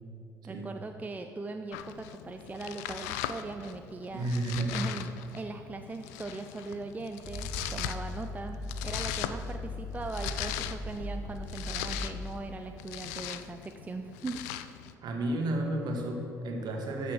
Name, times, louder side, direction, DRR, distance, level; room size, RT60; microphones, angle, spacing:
voice 1, 0.4-4.3 4.7-14.4, right 3 dB, 15° right, 6 dB, 0.5 m, -40 dB
Domestic sounds home sounds, 1.7-14.9, left 11 dB, 65° left, 0.4 m, -40 dB
voice 2, 4.1-5.0 15.0-17.1, right 1 dB, 50° right, 2 dB, 1.6 m, -32 dB
sound 1, 7.2-12.3, left 1 dB, 20° left, 2.5 m, -38 dB
13.5 x 6.0 x 4.8 m, 2.7 s
figure-of-eight pair, 50°, 9 cm